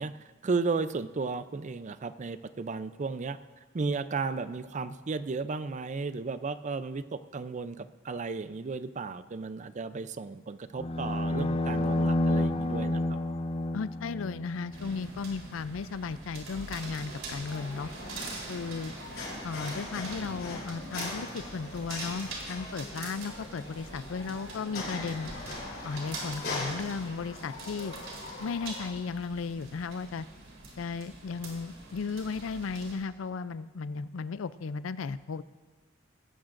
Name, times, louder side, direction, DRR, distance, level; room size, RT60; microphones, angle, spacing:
voice 1, 0.0-3.4 3.7-13.2, right 4 dB, 40° right, 13 dB, 0.4 m, -34 dB
sound 1, 10.8-15.1, left 1 dB, 30° left, 0.5 m, -29 dB
voice 2, 13.7-17.9 18.5-18.9 19.4-25.3 25.8-27.9 28.4-30.3 30.8-35.4, left 5 dB, 85° left, 15 dB, 0.4 m, -35 dB
sound 2, 14.7-32.9, right 2 dB, 75° right, 3.7 m, -44 dB
sound 3, 17.4-28.9, left 2 dB, 55° left, 4.3 m, -41 dB
18.5 x 15.0 x 2.6 m, 1.4 s
head